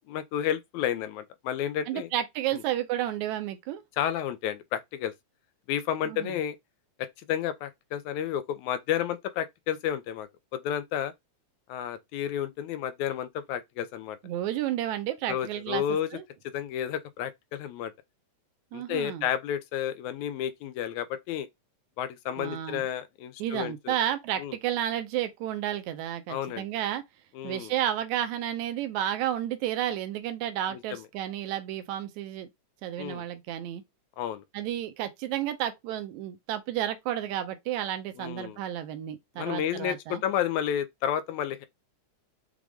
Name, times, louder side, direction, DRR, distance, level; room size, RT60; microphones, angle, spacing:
voice 1, 0.0-2.1 2.5-2.6 4.0-5.1 5.7-6.6 7.0-11.1 11.7-14.2 15.3-16.1 16.4-17.9 18.7-21.5 22.0-24.0 24.4-24.6 26.3-26.7 27.3-27.7 30.7-31.1 33.0-33.2 34.2-34.4 38.2-38.6 39.4-41.7, left 10 dB, 85° left, 2.0 m, -31 dB
voice 2, 1.9-3.8 6.1-6.3 14.2-15.8 16.1-16.2 18.7-19.3 22.4-22.9 23.4-27.0 27.4-32.5 32.8-33.8 34.5-40.2, right 11 dB, 80° right, 2.0 m, -31 dB
6.1 x 2.5 x 3.4 m
omnidirectional pair, 3.3 m